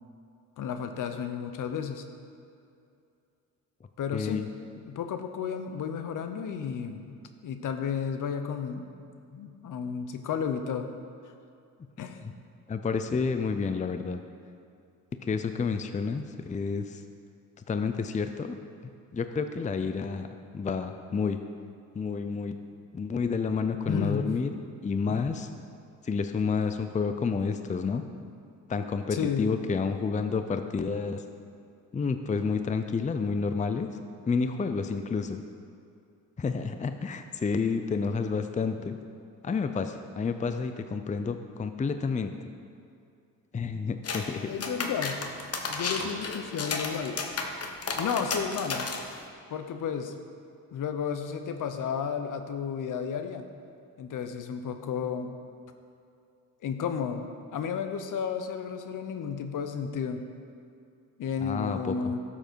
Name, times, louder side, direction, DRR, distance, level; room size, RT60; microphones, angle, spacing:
voice 1, 0.6-2.0 4.0-4.4 4.8-7.2 7.4-8.9 9.3-10.9 12.0-12.3 23.9-24.3 25.1-25.3 29.1-29.6 44.5-45.2 45.7-47.2 48.0-48.9 49.5-50.1 50.7-53.5 54.0-55.3 56.6-60.2 61.2-62.2, left 7 dB, 60° left, 7 dB, 1.0 m, -32 dB
voice 2, 4.1-4.5 12.2-12.3 12.7-14.2 15.2-17.0 17.7-18.6 19.1-21.4 21.9-22.6 22.9-24.6 24.8-25.5 26.0-28.0 28.7-31.2 31.9-34.0 34.3-35.4 36.4-39.0 39.4-42.3 43.5-44.5 61.4-61.9, left 5 dB, 20° left, 8 dB, 0.6 m, -30 dB
sound 1, 44.0-44.3 44.6-49.2, left 4 dB, 40° left, 1.3 m, -33 dB
12.5 x 7.4 x 4.6 m, 2.5 s
supercardioid pair, 70°, 36 cm